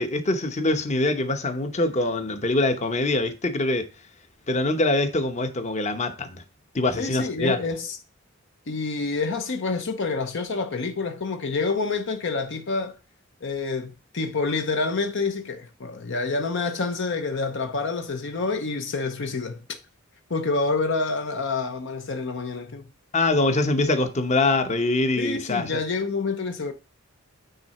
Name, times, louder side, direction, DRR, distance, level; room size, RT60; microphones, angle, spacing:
voice 1, 0.0-3.9 4.5-6.3 6.7-7.6 23.1-25.8, left 2 dB, 35° left, 0.9 m, -24 dB
voice 2, 7.0-8.0 8.7-13.0 13.4-19.6 20.3-22.8 25.2-26.7, left 3 dB, 60° left, 0.8 m, -27 dB
9.4 x 3.7 x 4.3 m
head